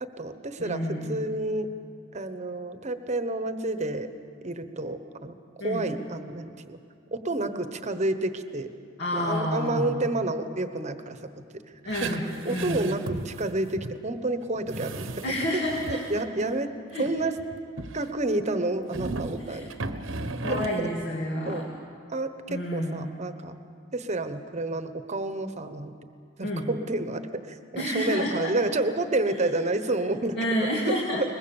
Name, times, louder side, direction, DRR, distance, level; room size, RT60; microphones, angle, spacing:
voice 1, 0.0-1.7 2.1-4.1 4.4-5.3 5.6-6.8 7.1-8.7 9.1-11.4 12.0-15.1 15.5-15.6 15.9-16.7 17.0-17.4 17.9-19.7 20.5-20.9 21.4-21.6 22.1-23.5 23.9-25.9 26.4-30.7, right 2 dB, 35° right, 9 dB, 1.1 m, -30 dB
voice 2, 0.6-1.2 5.6-5.8 9.0-10.0 11.8-12.9 15.2-16.0 16.9-17.1 19.5-19.7 20.4-21.6 22.5-23.1 26.4-26.7 27.8-28.5 30.4-31.2, equal, 60° left, -2 dB, 2.4 m, -29 dB
sound 1, 11.9-13.9 14.2-14.3 14.6-16.2 17.0-18.1 18.9-20.8, right 3 dB, 75° right, 1.1 m, -36 dB
22.5 x 21.0 x 7.2 m, 2.3 s
head